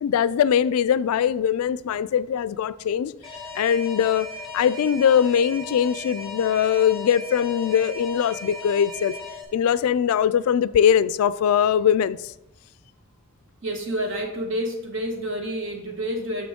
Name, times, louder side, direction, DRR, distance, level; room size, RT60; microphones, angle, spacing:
voice 1, 0.0-3.1 3.6-4.3 4.5-9.1 9.5-12.2, left 8 dB, 85° left, 0.3 m, -21 dB
Alarm, 3.2-9.4, left 2 dB, ahead, 1.1 m, -37 dB
voice 2, 13.6-16.5, equal, 60° right, 1.3 m, -29 dB
7.0 x 6.0 x 3.6 m
head